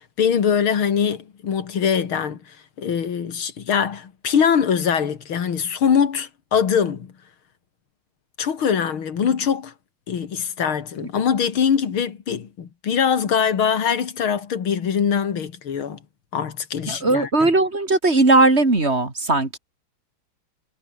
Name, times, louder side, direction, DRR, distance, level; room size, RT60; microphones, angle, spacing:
voice 1, 0.2-7.1 8.4-9.7 10.1-16.0 16.3-17.5, left 7 dB, 85° left, 2.9 m, -22 dB
voice 2, 16.9-19.6, right 2 dB, 30° right, 3.3 m, -18 dB
omnidirectional pair, 2.2 m